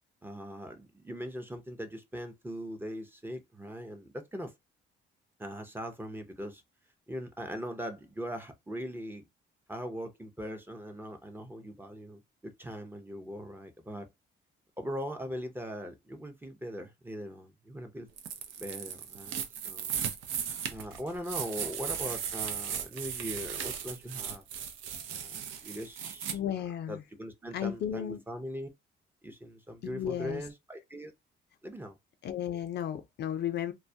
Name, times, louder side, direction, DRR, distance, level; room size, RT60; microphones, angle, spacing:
voice 1, 0.2-4.5 5.4-6.6 7.1-9.3 9.7-14.1 14.8-18.1 18.6-19.9 20.7-24.4 25.1-26.6 26.9-28.7 29.2-31.1 31.6-31.9, equal, 10° right, 0.5 m, -40 dB
sound 1, 18.2-26.3, right 8 dB, 80° right, 0.5 m, -37 dB
voice 2, 26.3-27.0 27.5-28.2 29.8-30.4 32.2-33.7, left 10 dB, 60° left, 0.4 m, -34 dB
2.2 x 2.1 x 2.6 m
cardioid pair, 90°, 20 cm